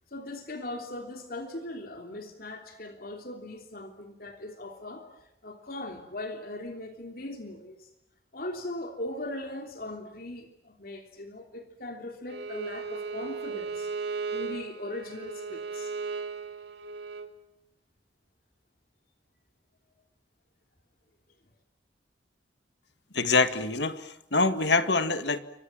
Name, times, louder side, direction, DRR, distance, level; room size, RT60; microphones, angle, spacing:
voice 1, 0.1-5.0 5.4-7.9 8.3-13.9 14.3-15.9, left 1 dB, 50° left, 4 dB, 3.1 m, -39 dB
Bowed string instrument, 12.3-17.3, right 4 dB, 70° right, 3.1 m, -36 dB
voice 2, 23.1-25.4, left 3 dB, 70° left, 10 dB, 2.0 m, -25 dB
29.0 x 25.5 x 7.4 m, 0.81 s
head